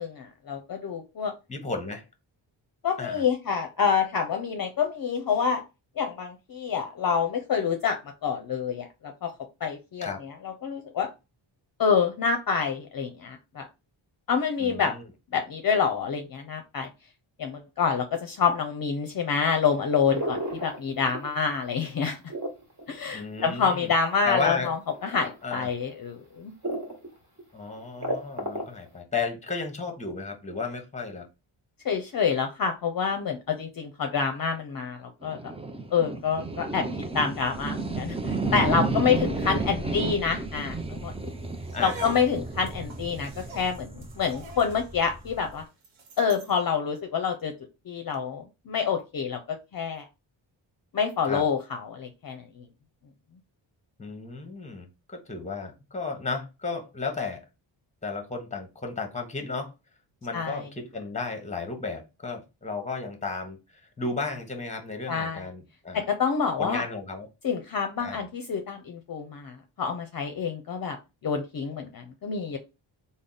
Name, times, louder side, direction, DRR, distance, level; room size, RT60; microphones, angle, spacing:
voice 1, 0.0-1.3 2.8-5.6 6.0-9.3 9.6-11.1 11.8-13.7 14.3-14.9 15.3-16.9 17.4-22.2 22.9-24.8 25.0-26.5 31.8-35.4 35.9-36.8 37.1-41.3 41.8-45.6 46.2-47.5 47.9-50.0 50.9-52.6 60.3-60.7 65.1-65.5 65.9-66.8 67.4-71.0 71.2-72.6, left 6 dB, 45° left, 5 dB, 0.6 m, -27 dB
voice 2, 1.5-2.0 3.0-3.3 10.0-10.2 14.6-15.0 23.1-23.9 24.2-24.7 25.4-25.7 27.5-31.3 39.8-40.1 41.7-42.1 51.2-51.4 54.0-57.4 58.0-59.7 60.2-66.0 66.6-67.3 68.0-68.2, left 4 dB, 15° left, 5 dB, 0.9 m, -33 dB
sound 1, 20.1-21.4 21.8-24.1 24.9-25.3 25.9-26.0 26.6-27.1 27.4-27.5 27.8-28.9, right 1 dB, 35° right, 1.5 m, -33 dB
sound 2, 35.2-45.6, right 3 dB, 15° right, 0.4 m, -32 dB
sound 3, 41.6-46.6, right 4 dB, 75° right, 1.0 m, -46 dB
3.4 x 2.1 x 3.9 m, 0.27 s
cardioid pair, 80°, 47 cm